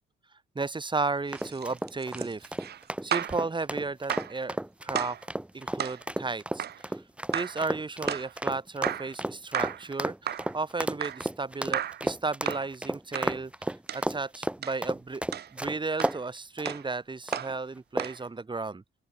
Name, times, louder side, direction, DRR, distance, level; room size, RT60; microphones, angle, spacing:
voice 1, 0.5-2.5 3.0-4.6 4.8-5.2 5.5-6.7 7.3-13.5 13.9-15.2 15.5-18.8, right 3 dB, 25° right, 2.9 m, -34 dB
sound 1, 1.3-16.2 16.6-16.8 17.3-17.5 18.0-18.3, right 1 dB, 5° right, 1.1 m, -33 dB
sound 2, 1.3-3.4 4.1-4.4 5.0-5.2 5.8-6.0 6.6-6.8 7.3-7.6 8.1-8.3 8.8-9.1 9.5-9.9 10.3-10.5 11.0-11.3 11.7-12.1 12.5-12.7 13.2-13.4 13.9-14.1 14.6-14.8 15.3-15.5 16.0-16.2 16.7-16.9 17.3-17.6 18.0-18.2, right 10 dB, 55° right, 0.8 m, -34 dB
open air
cardioid pair, 90°, 20 cm